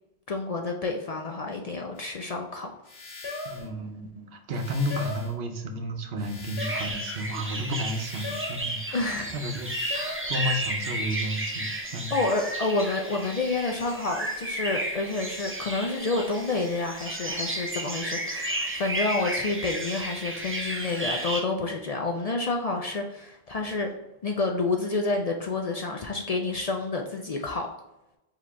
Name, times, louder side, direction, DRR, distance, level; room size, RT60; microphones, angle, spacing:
voice 1, 0.3-2.7 8.9-9.4 12.1-23.9 24.2-27.7, left 3 dB, 50° left, 2 dB, 0.5 m, -29 dB
sound 1, 2.0-2.1 2.9-3.7 4.5-5.4 6.2-7.0 7.9-8.7 9.5-10.3, left 2 dB, 75° left, 1.2 m, -38 dB
voice 2, 3.4-12.2, equal, 65° right, 5 dB, 0.9 m, -32 dB
sound 2, 6.6-21.4, right 1 dB, 15° right, 0.4 m, -33 dB
4.8 x 2.9 x 3.3 m, 0.93 s
omnidirectional pair, 1.1 m